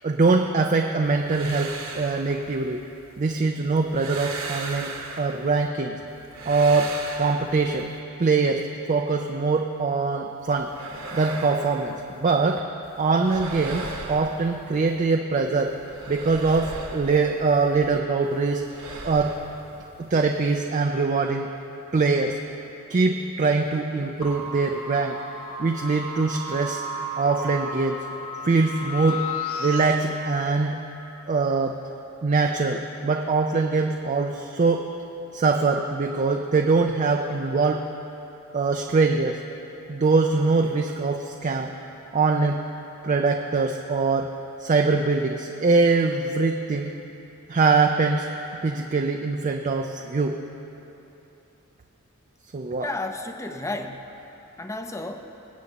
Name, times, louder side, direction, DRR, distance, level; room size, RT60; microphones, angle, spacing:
voice 1, 0.0-2.8 3.2-6.0 6.5-7.9 8.2-10.7 11.1-12.6 13.0-15.7 16.1-18.6 19.0-19.4 20.0-21.5 21.9-22.4 22.9-25.2 25.6-26.8 27.2-28.1 28.4-29.2 29.6-30.8 31.3-31.8 32.2-34.8 35.3-37.9 38.5-39.4 39.9-41.7 42.1-42.6 43.0-44.3 44.6-46.9 47.5-48.3 48.6-50.4 52.5-52.9, right 4 dB, 35° right, 3 dB, 0.4 m, -23 dB
sound 1, 1.0-3.2 3.6-5.7 6.1-8.0 10.4-12.6 12.8-15.1 15.4-18.0 18.2-20.6, right 3 dB, 65° right, 1.3 m, -39 dB
sound 2, 24.2-30.0, left 1 dB, 85° left, 1.2 m, -33 dB
voice 2, 52.8-54.1 54.6-55.3, left 2 dB, 15° left, 6 dB, 0.5 m, -32 dB
24.5 x 8.3 x 2.9 m, 3.0 s
head